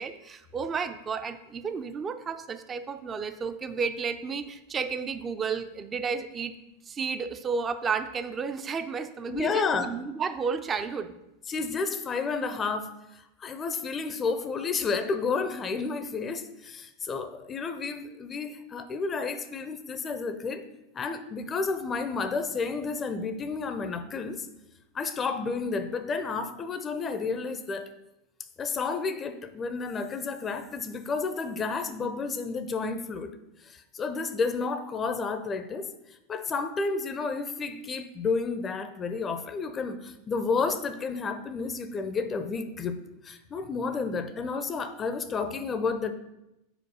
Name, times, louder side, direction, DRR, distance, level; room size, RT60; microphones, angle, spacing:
voice 1, 0.0-6.5 6.8-11.1, right 5 dB, 25° right, 10 dB, 0.5 m, -32 dB
voice 2, 9.3-9.9 11.5-20.6 20.9-24.5 24.9-27.9 28.6-33.3 33.6-46.1, left 4 dB, 25° left, 10 dB, 0.6 m, -31 dB
5.0 x 4.6 x 6.1 m, 0.92 s
figure-of-eight pair, 85°, 0 cm